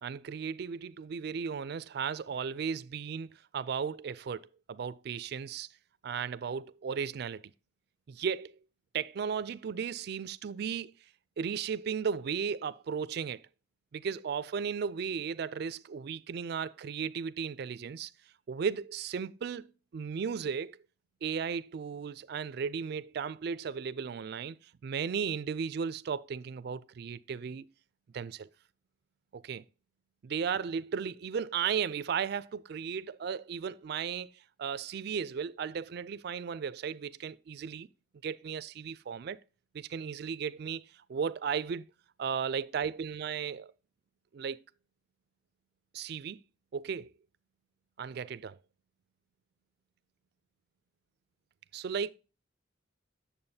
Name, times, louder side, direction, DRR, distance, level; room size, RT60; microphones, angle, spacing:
voice 1, 0.0-5.7 6.0-7.5 8.1-8.5 8.9-10.9 11.4-13.4 13.9-18.1 18.5-19.7 19.9-20.7 21.2-27.6 28.1-28.5 29.3-29.6 30.2-34.3 34.6-37.9 38.2-39.4 39.7-41.9 42.2-43.7 44.3-44.6 45.9-46.4 46.7-47.1 48.0-48.6 51.7-52.1, right 6 dB, 55° right, 0.3 m, -35 dB
8.8 x 6.9 x 2.7 m
head